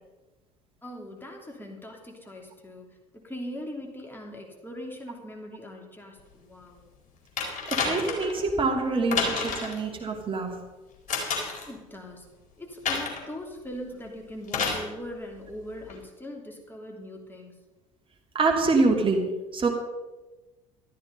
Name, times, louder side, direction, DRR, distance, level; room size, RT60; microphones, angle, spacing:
voice 1, 0.8-6.8 11.7-12.3 12.6-17.6, left 1 dB, 10° left, 1 dB, 3.0 m, -41 dB
sound 1, 7.4-8.3 9.1-9.8 11.1-11.7 12.8-13.3 14.5-14.9 15.9-16.0, left 5 dB, 45° left, 4.3 m, -29 dB
voice 2, 7.7-10.6 18.3-19.7, right 3 dB, 30° right, 1 dB, 2.8 m, -25 dB
13.5 x 12.5 x 5.4 m, 1.1 s
figure-of-eight pair, 65°, 18 cm